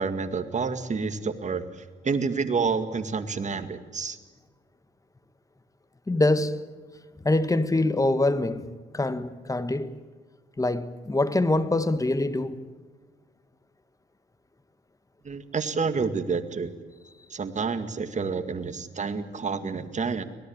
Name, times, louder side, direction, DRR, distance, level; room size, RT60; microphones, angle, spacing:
voice 1, 0.0-1.6 2.0-4.2 15.2-16.7 17.3-20.2, right 5 dB, 35° right, 2.1 m, -29 dB
voice 2, 6.1-6.7 7.2-10.0 10.6-12.7, left 2 dB, 15° left, 1.5 m, -25 dB
25.0 x 18.5 x 8.8 m
cardioid pair, 90°, 20 cm